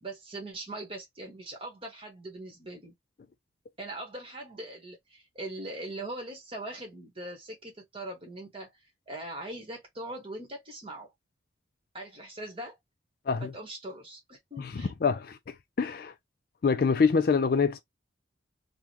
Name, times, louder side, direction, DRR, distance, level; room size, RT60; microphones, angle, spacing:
voice 1, 0.0-2.9 3.8-8.7 9.1-11.1 11.9-12.8 13.4-14.9, right 1 dB, 30° right, 1.3 m, -41 dB
voice 2, 14.6-16.1 16.6-17.8, left 5 dB, 50° left, 0.4 m, -26 dB
3.5 x 2.2 x 2.9 m
head